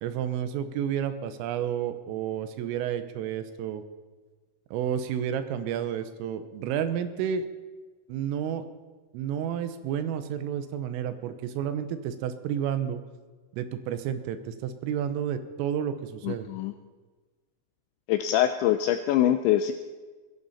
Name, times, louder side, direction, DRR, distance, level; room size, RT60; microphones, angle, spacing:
voice 1, 0.0-3.8 4.7-7.5 8.1-8.7 9.1-13.0 13.5-16.5, right 9 dB, 80° right, 10 dB, 3.5 m, -31 dB
voice 2, 16.2-16.7 18.1-19.7, left 11 dB, 85° left, 9 dB, 2.6 m, -24 dB
22.0 x 15.5 x 4.2 m, 1.3 s
omnidirectional pair, 5.9 m